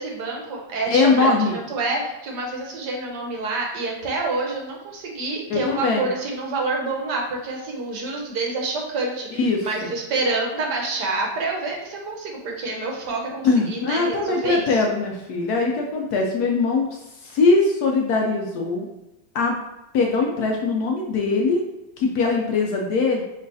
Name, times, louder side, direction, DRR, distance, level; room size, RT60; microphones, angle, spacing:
voice 1, 0.0-14.7, right 3 dB, 70° right, 0 dB, 1.3 m, -27 dB
voice 2, 0.9-1.6 5.5-6.1 9.3-9.9 13.4-18.9 19.3-19.5 19.9-21.6 22.0-23.2, left 3 dB, 70° left, 1 dB, 1.0 m, -21 dB
4.5 x 3.1 x 2.6 m, 0.95 s
omnidirectional pair, 2.0 m